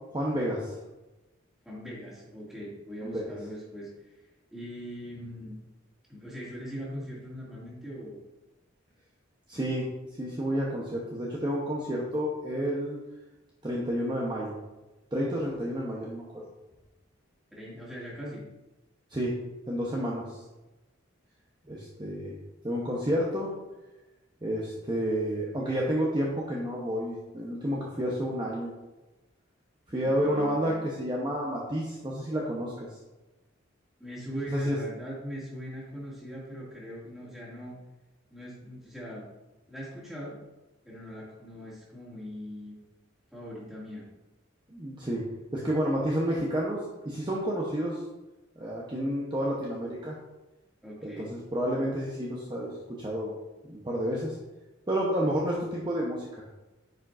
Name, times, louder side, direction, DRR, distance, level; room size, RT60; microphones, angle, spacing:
voice 1, 0.1-0.7 3.0-3.2 9.5-9.9 10.2-13.0 13.6-14.5 15.1-16.4 19.1-19.4 19.7-20.2 21.7-22.4 22.6-23.5 24.4-28.7 29.9-32.9 34.5-34.8 44.7-45.2 45.5-46.8 47.0-48.0 48.6-50.1 51.0-53.3 53.7-54.4 54.9-56.3, equal, 20° right, -4 dB, 0.8 m, -30 dB
voice 2, 1.6-4.2 4.5-5.6 6.1-8.2 17.5-18.4 30.0-30.8 34.0-37.8 38.3-39.2 39.7-40.4 40.8-42.8 43.3-44.1 50.8-51.3, equal, ahead, -8 dB, 2.2 m, -41 dB
9.4 x 5.1 x 2.5 m, 1.1 s
head